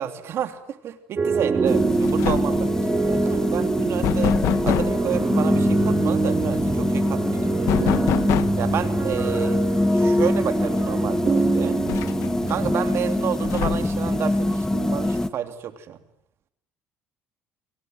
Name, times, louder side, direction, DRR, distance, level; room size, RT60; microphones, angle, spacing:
voice 1, 0.0-4.3 4.6-8.0 8.6-9.6 9.9-11.8 12.5-16.0, right 9 dB, 60° right, 8 dB, 3.1 m, -30 dB
bytechop - winter keys - for sampling, 1.2-12.7, right 5 dB, 35° right, 2.4 m, -26 dB
sound 1, 1.6-1.8 2.0-2.7 4.0-5.0 7.7-8.7 10.3-10.4 10.8-10.9 11.9-12.5 13.4-14.1, left 14 dB, 70° left, 1.3 m, -26 dB
sound 2, 1.7-15.3, left 1 dB, 10° left, 1.7 m, -24 dB
29.5 x 23.5 x 7.9 m, 0.76 s
supercardioid pair, 80°, 5 cm